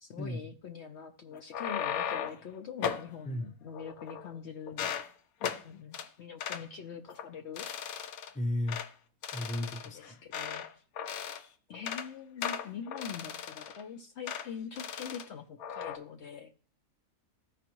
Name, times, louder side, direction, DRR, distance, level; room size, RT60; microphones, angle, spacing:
voice 1, 0.0-4.9 5.6-7.7 9.9-10.8 11.7-16.5, left 7 dB, 60° left, 4 dB, 0.8 m, -44 dB
sound 1, 1.3-2.5 2.8-3.1 3.7-4.4 4.7-5.1 5.4-5.6 5.9-6.1 6.4-6.6 7.1-7.3 7.6-8.3 8.7-8.9 9.2-10.7 11.0-11.5 11.7-12.1 12.4-13.8 14.3-14.5 14.8-15.3 15.6-16.0, left 8 dB, 80° left, 1.2 m, -37 dB
voice 2, 8.3-8.8 9.3-10.1, left 1 dB, 10° left, 4 dB, 0.6 m, -34 dB
14.5 x 4.9 x 3.0 m, 0.42 s
omnidirectional pair, 1.5 m